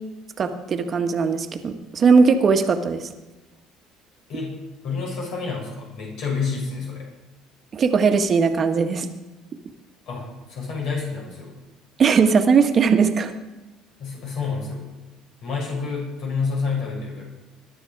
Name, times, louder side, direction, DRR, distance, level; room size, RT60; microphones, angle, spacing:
voice 1, 0.4-3.1 7.7-9.1 12.0-13.3, right 5 dB, 40° right, 6 dB, 1.6 m, -19 dB
voice 2, 4.8-7.1 10.1-11.5 14.0-14.9 15.4-17.2, left 4 dB, 65° left, -2 dB, 7.2 m, -28 dB
21.0 x 11.5 x 4.8 m, 1.1 s
cardioid pair, 110°, 0 cm